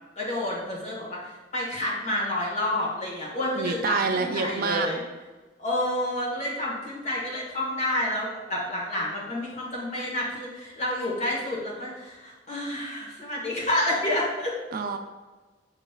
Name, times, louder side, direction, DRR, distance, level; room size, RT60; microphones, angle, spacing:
voice 1, 0.2-5.0 5.6-14.5, left 1 dB, 40° left, -4 dB, 1.3 m, -29 dB
voice 2, 3.6-4.9 14.7-15.0, right 5 dB, 55° right, 6 dB, 0.4 m, -27 dB
6.5 x 3.0 x 2.4 m, 1.2 s
head